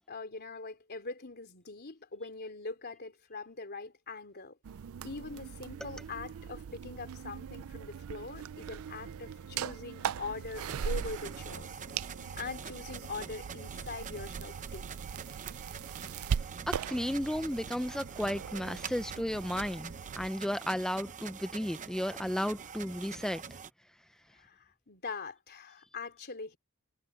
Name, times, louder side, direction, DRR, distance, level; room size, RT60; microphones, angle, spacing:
voice 1, 0.1-4.6 5.0-11.7 12.4-14.9 24.3-26.6, left 3 dB, 50° left, 3.5 m, -42 dB
sound 1, 4.6-20.3, right 7 dB, 70° right, 0.4 m, -40 dB
sound 2, 8.5-23.2, right 4 dB, 85° right, 3.0 m, -59 dB
sound 3, 10.5-23.7, right 6 dB, 35° right, 0.8 m, -45 dB
voice 2, 16.7-23.4, equal, 5° left, 0.4 m, -34 dB
head